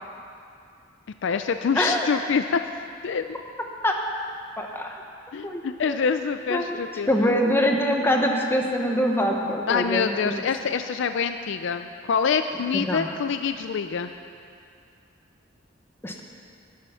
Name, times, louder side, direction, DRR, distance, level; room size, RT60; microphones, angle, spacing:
voice 1, 1.2-2.6 3.0-3.3 5.3-7.1 9.5-14.1, left 6 dB, 65° left, 8 dB, 0.4 m, -26 dB
voice 2, 1.7-2.1 3.8-4.0 4.6-4.9 5.4-6.0 6.5-6.8 7.1-10.4 12.7-13.1 16.0-16.2, equal, 10° left, 1 dB, 1.1 m, -24 dB
13.0 x 10.5 x 5.7 m, 2.5 s
head